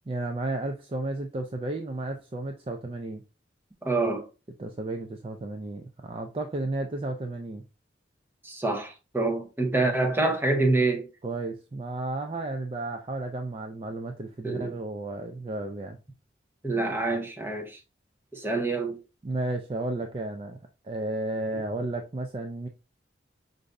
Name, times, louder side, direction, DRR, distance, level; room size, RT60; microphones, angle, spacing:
voice 1, 0.1-3.2 4.6-7.6 11.2-16.0 19.2-20.6 20.8-22.7, right 2 dB, 30° right, 0.4 m, -33 dB
voice 2, 3.8-4.3 8.4-11.1 14.4-14.7 16.6-17.8 18.3-19.0, right 2 dB, 10° right, 0.8 m, -26 dB
5.0 x 2.6 x 3.3 m
head